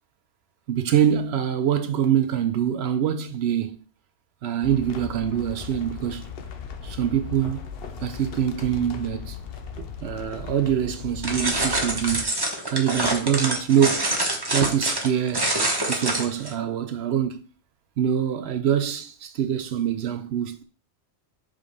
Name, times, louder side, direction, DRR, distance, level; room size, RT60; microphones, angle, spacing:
voice 1, 0.7-3.8 4.4-6.3 6.8-7.7 8.0-9.4 9.8-12.3 12.7-14.2 14.5-15.5 15.9-17.4 18.0-20.6, right 9 dB, 75° right, 0.8 m, -24 dB
sound 1, 4.6-12.2, left 7 dB, 65° left, 0.9 m, -37 dB
sound 2, 11.2-16.5, right 1 dB, 25° right, 1.0 m, -26 dB
5.1 x 3.6 x 5.3 m
omnidirectional pair, 1.1 m